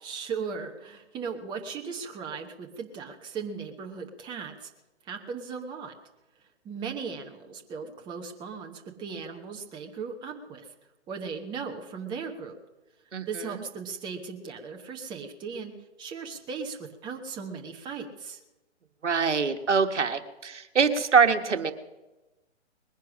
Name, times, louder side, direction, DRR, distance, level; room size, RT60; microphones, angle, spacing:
voice 1, 0.0-4.7 5.0-5.9 6.6-10.7 11.1-12.6 13.3-15.7 16.0-18.4, right 5 dB, 15° right, 3 dB, 1.0 m, -37 dB
voice 2, 19.0-21.7, right 5 dB, 75° right, 9 dB, 1.3 m, -24 dB
20.5 x 10.5 x 6.2 m, 1.1 s
figure-of-eight pair, 130°, 35 cm